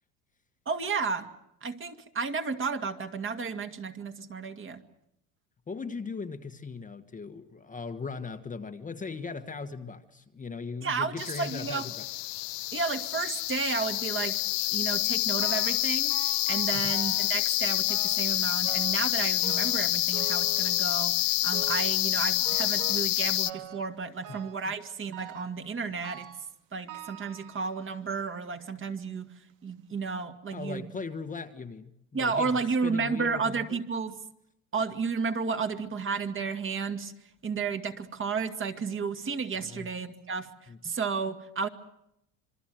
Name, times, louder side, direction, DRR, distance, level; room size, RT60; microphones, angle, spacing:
voice 1, 0.7-1.3 1.6-4.8 10.8-11.9 12.7-14.4 14.7-16.2 16.5-21.2 21.4-26.3 26.7-29.3 29.6-30.9 32.1-34.1 34.7-37.1 37.4-40.5 40.8-41.7, right 5 dB, 30° right, 7 dB, 2.3 m, -32 dB
voice 2, 5.7-12.1 16.8-16.9 24.3-24.4 24.7-24.8 30.5-31.9 32.2-33.8 39.6-39.9 40.7-40.9, left 4 dB, 20° left, 7 dB, 1.3 m, -39 dB
sound 1, 11.2-23.5, left 20 dB, 80° left, 1.3 m, -28 dB
sound 2, 15.4-15.8 16.1-17.4 17.9-18.3 18.6-19.1 19.4-21.1 21.5-22.0 22.4-23.1 23.5-23.9 24.2-24.7 25.1-25.6 26.0-26.5 26.9-27.9 28.6-28.7 29.5-29.6 30.0-30.1, right 11 dB, 85° right, 2.1 m, -44 dB
26.5 x 23.5 x 7.8 m, 0.80 s
supercardioid pair, 115°, 40 cm